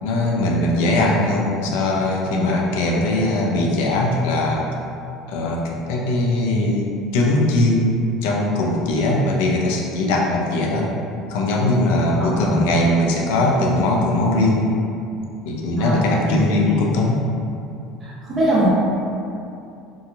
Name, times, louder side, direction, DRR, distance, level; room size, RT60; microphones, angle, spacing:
voice 1, 0.0-4.6 5.3-5.6 5.9-10.9 11.3-14.7 15.4-17.2, left 1 dB, 75° left, -2 dB, 0.4 m, -20 dB
voice 2, 12.2-12.8 15.8-16.8 18.0-18.7, equal, 40° right, -7 dB, 1.0 m, -22 dB
2.9 x 2.3 x 2.5 m, 2.6 s
hypercardioid pair, 85°, 0 cm